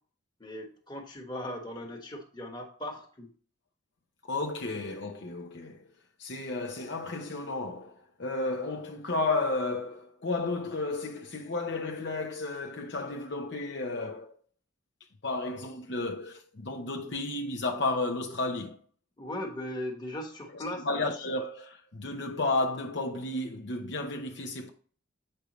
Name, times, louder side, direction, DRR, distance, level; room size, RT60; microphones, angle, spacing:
voice 1, 0.4-3.3 19.2-21.0, left 1 dB, 20° left, 1.4 m, -38 dB
voice 2, 4.2-5.9 6.2-14.3 15.2-18.8 20.5-24.7, left 2 dB, 55° left, 0.8 m, -32 dB
8.2 x 5.4 x 3.1 m
head